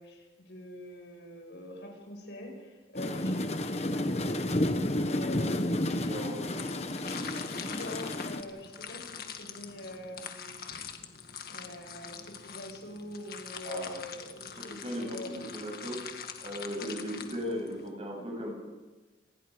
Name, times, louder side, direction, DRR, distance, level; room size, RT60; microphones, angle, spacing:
voice 1, 0.0-6.5 7.1-10.6 11.5-15.4, left 1 dB, 75° left, 2 dB, 6.0 m, -44 dB
sound 1, 2.9-8.4, left 1 dB, 35° left, 1.2 m, -31 dB
voice 2, 5.9-6.4 13.6-13.9 14.6-16.0 16.4-18.5, equal, 35° right, 0 dB, 7.8 m, -37 dB
sound 2, 6.6-17.9, left 6 dB, 55° left, 2.0 m, -44 dB
29.0 x 20.0 x 5.1 m, 1.2 s
head